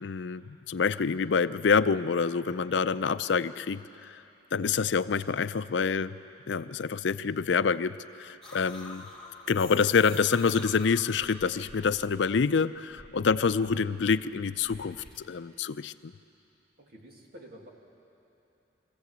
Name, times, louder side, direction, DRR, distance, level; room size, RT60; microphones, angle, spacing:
voice 1, 0.0-4.2 4.5-6.2 6.5-9.0 9.5-15.0 15.3-16.1, left 5 dB, 70° left, 14 dB, 0.5 m, -27 dB
sound 1, 8.4-12.4 12.7-15.2, left 2 dB, ahead, 2.2 m, -47 dB
voice 2, 16.8-17.7, equal, 55° right, 0 dB, 2.5 m, -50 dB
23.5 x 15.5 x 8.2 m, 2.9 s
head